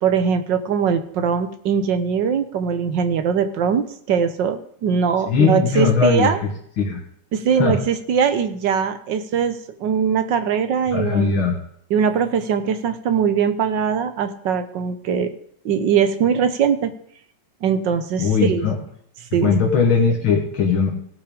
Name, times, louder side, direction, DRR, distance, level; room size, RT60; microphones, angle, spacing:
voice 1, 0.0-6.4 7.3-11.3 11.9-15.3 15.6-16.9 17.6-18.7 19.3-19.5, right 7 dB, 65° right, 10 dB, 1.5 m, -21 dB
voice 2, 5.3-6.5 6.8-7.0 7.6-7.8 10.9-11.6 18.2-18.8 19.3-21.0, left 5 dB, 80° left, 0 dB, 2.6 m, -19 dB
17.5 x 5.9 x 5.1 m, 0.66 s
omnidirectional pair, 2.2 m